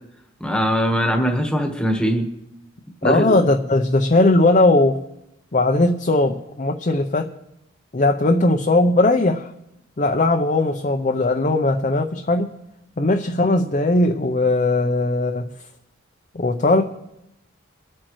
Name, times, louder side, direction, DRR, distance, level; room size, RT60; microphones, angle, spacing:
voice 1, 0.4-2.3 3.0-3.4, equal, 5° left, 2 dB, 1.3 m, -21 dB
voice 2, 3.0-5.0 5.5-7.3 7.9-9.5 10.0-12.5 13.0-15.4 16.3-16.8, left 2 dB, 40° left, 4 dB, 0.6 m, -18 dB
24.0 x 8.7 x 3.1 m, 0.87 s
head